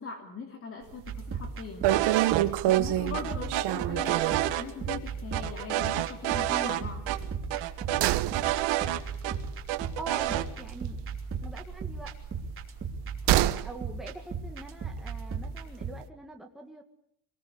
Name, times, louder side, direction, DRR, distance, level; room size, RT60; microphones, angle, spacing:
voice 1, 0.0-1.8 2.6-7.0, left 5 dB, 30° left, 3 dB, 2.7 m, -40 dB
sound 1, 0.9-1.2 1.5-1.6 1.8-4.5 4.9-5.1 5.4-5.5 7.1-11.0 11.3-13.7 14.0-14.1, right 15 dB, 65° right, 1.1 m, -28 dB
sound 2, 1.1-15.9, right 5 dB, 30° right, 3.0 m, -37 dB
sound 3, 1.9-2.4 2.7-2.8 3.1-4.6 4.9-5.0 5.3-6.8 7.1-7.2 7.5-9.3 9.7-10.5, right 15 dB, 90° right, 2.0 m, -29 dB
voice 2, 10.0-11.0 11.4-12.1 13.5-16.8, right 2 dB, ahead, 1 dB, 1.9 m, -43 dB
25.5 x 20.0 x 8.4 m, 0.69 s
cardioid pair, 170°, 43 cm